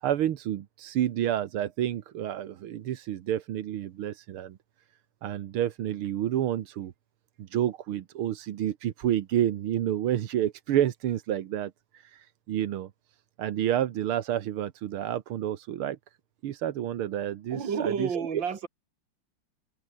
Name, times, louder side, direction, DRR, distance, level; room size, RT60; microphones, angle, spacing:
voice 1, 0.0-4.6 5.2-6.9 7.4-12.9 13.4-16.0 16.4-18.1, right 11 dB, 85° right, 2.0 m, -29 dB
voice 2, 17.5-18.7, right 6 dB, 60° right, 3.1 m, -30 dB
omnidirectional pair, 2.3 m